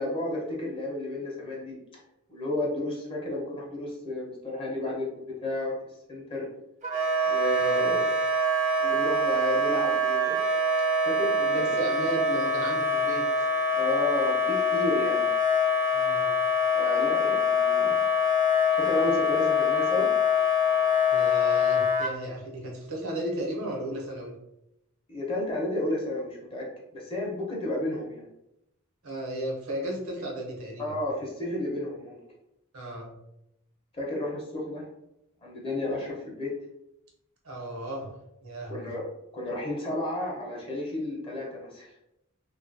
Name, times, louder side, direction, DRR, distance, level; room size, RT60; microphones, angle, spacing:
voice 1, 0.0-1.8 2.3-5.8 6.1-6.4 7.3-8.1 8.8-10.4 11.0-11.7 13.7-15.3 16.7-18.0 18.7-20.1 25.1-26.7 26.9-28.3 30.8-32.2 33.9-34.9 35.4-36.5 38.7-39.0 39.3-41.9, left 1 dB, 25° left, -3 dB, 0.7 m, -32 dB
Wind instrument woodwind instrument, 6.8-22.1, left 3 dB, 35° right, 0.5 m, -24 dB
voice 2, 7.6-8.0 11.3-13.5 15.9-16.4 21.1-24.4 29.0-31.0 32.7-33.2 37.4-38.1 38.4-38.9, right 1 dB, 85° right, -1 dB, 0.9 m, -34 dB
2.6 x 2.4 x 2.5 m, 0.85 s
head